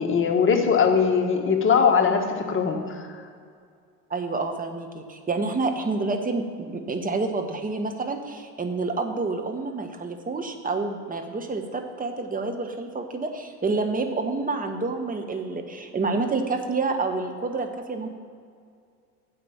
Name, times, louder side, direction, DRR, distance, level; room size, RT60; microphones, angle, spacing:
voice 1, 0.0-3.1, left 6 dB, 25° left, 2 dB, 1.6 m, -21 dB
voice 2, 4.1-18.1, right 3 dB, 15° right, 5 dB, 1.3 m, -28 dB
9.5 x 7.0 x 7.3 m, 2.3 s
figure-of-eight pair, 75°, 48 cm